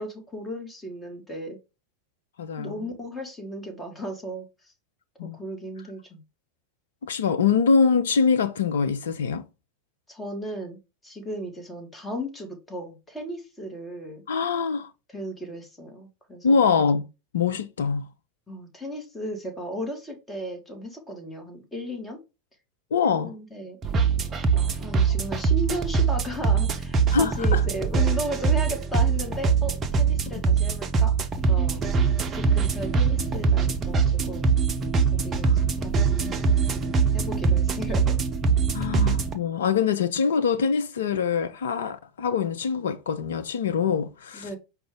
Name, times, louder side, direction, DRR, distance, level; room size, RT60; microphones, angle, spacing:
voice 1, 0.0-1.6 2.6-4.5 5.2-6.2 10.1-10.8 11.0-14.2 15.1-16.6 18.5-22.2 23.1-23.8 24.7-31.1 31.5-32.0 32.3-34.5 35.1-35.9 36.7-38.2 44.3-44.6, equal, 15° left, 1.5 m, -35 dB
voice 2, 2.4-2.9 5.2-5.4 7.0-9.5 14.3-14.9 16.4-17.1 17.3-18.0 22.9-23.3 27.1-27.6 30.3-30.4 35.4-35.6 36.2-36.3 38.7-44.5, left 5 dB, 65° left, 0.4 m, -24 dB
sound 1, 23.8-39.4, right 5 dB, 25° right, 0.6 m, -23 dB
4.9 x 2.3 x 3.6 m
figure-of-eight pair, 85°, 0 cm